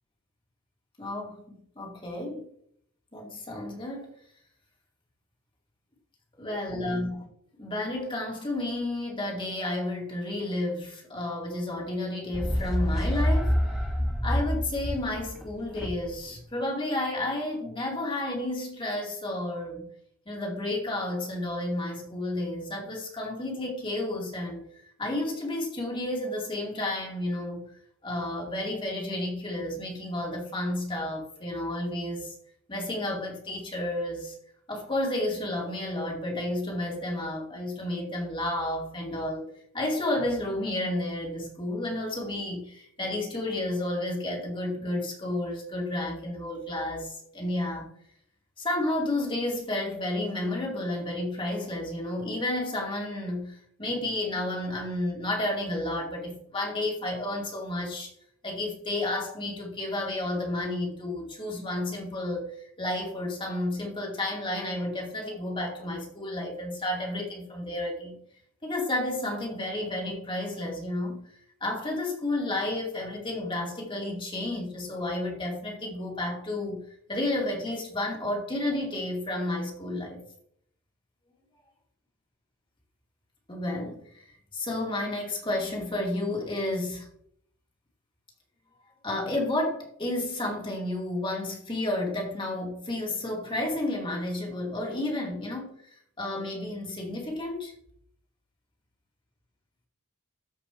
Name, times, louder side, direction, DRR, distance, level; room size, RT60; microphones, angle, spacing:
voice 1, 1.0-2.5 3.1-4.2 6.4-7.2 7.6-13.6 14.2-19.9 20.3-24.6 25.0-27.7 28.0-32.3 32.7-34.3 34.7-39.5 39.7-47.9 48.6-58.1 58.4-68.2 68.6-71.3 71.6-76.8 77.1-80.2 83.5-84.2 84.5-87.1 89.0-95.8 96.2-97.7, left 1 dB, 25° left, 2.4 m, -31 dB
sound 1, 12.3-16.1, equal, 5° right, 1.9 m, -27 dB
13.5 x 5.3 x 3.2 m
head